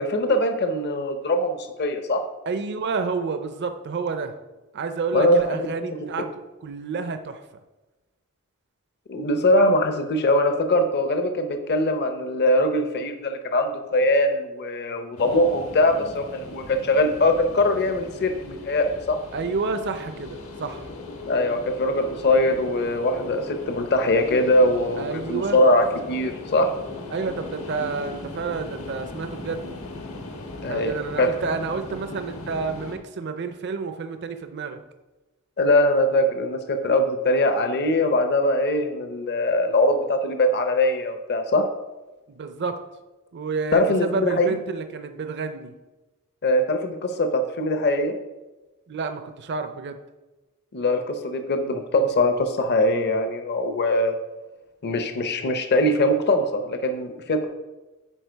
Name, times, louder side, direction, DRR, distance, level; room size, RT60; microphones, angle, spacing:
voice 1, 0.0-2.2 5.1-5.6 6.0-6.1 9.1-19.2 21.3-26.7 30.6-31.3 35.6-41.7 43.7-44.5 46.4-48.1 50.7-54.2 54.8-57.4, left 1 dB, 50° left, 7 dB, 0.7 m, -22 dB
voice 2, 2.5-4.4 4.7-6.3 6.6-7.4 19.3-20.9 24.9-25.6 27.1-29.6 30.6-34.8 42.3-42.8 43.3-45.7 48.9-50.0, right 4 dB, 55° right, 9 dB, 0.5 m, -29 dB
sound 1, 15.2-33.0, left 2 dB, 75° left, 1.4 m, -38 dB
10.0 x 4.5 x 4.5 m, 1.1 s
head